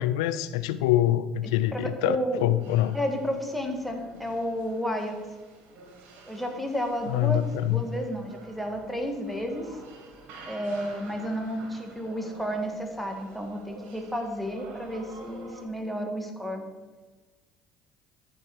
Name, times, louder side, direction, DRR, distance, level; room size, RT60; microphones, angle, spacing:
voice 1, 0.0-3.0 7.1-7.8, left 13 dB, 80° left, 14 dB, 0.4 m, -25 dB
voice 2, 1.7-2.5 2.9-5.2 6.3-9.8 10.5-16.6, equal, ahead, 3 dB, 1.8 m, -31 dB
sound 1, 2.6-15.6, right 3 dB, 65° right, 1.7 m, -49 dB
13.5 x 4.5 x 4.8 m, 1.4 s
hypercardioid pair, 70°, 3 cm